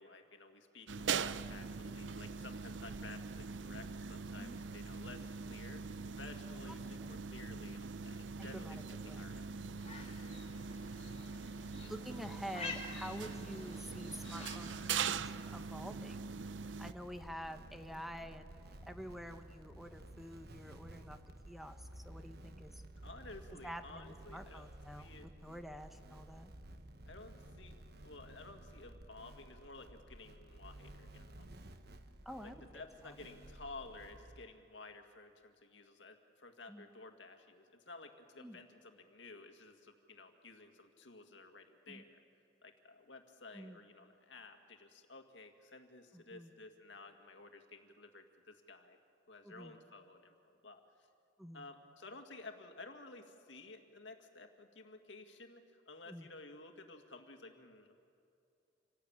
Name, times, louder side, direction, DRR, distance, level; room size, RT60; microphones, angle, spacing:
voice 1, 0.0-9.5 11.8-11.9 18.2-18.5 23.0-25.3 27.1-27.8 28.0-31.5 32.4-42.2 42.6-49.0 49.3-50.3 50.6-50.8 51.5-58.0, left 3 dB, 85° left, 5 dB, 2.1 m, -54 dB
sound 1, 0.9-16.9, right 5 dB, 90° right, 0.6 m, -42 dB
voice 2, 8.4-9.2 11.9-16.3 16.6-18.5 18.8-21.2 21.5-22.8 23.6-26.5 32.2-32.6 33.0-33.1 36.7-36.9 38.4-38.6 41.9-42.0 43.5-43.8 46.1-46.5 49.4-49.8 51.4-51.7 56.1-56.3, equal, ahead, 7 dB, 1.0 m, -48 dB
sound 2, 9.8-15.1, left 3 dB, 35° left, 2.5 m, -49 dB
sound 3, 16.8-34.5, right 1 dB, 60° right, 1.2 m, -54 dB
27.0 x 18.0 x 8.8 m, 2.6 s
head